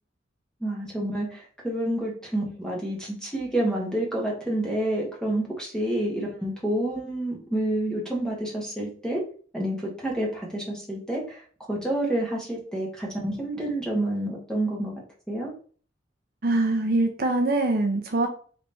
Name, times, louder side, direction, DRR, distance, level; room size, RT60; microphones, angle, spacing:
voice 1, 0.6-9.2 9.5-14.9 15.3-15.5, right 1 dB, 5° left, -2 dB, 1.2 m, -29 dB
voice 2, 16.4-18.3, right 2 dB, 50° right, 5 dB, 0.5 m, -23 dB
4.0 x 3.0 x 3.4 m, 0.42 s
head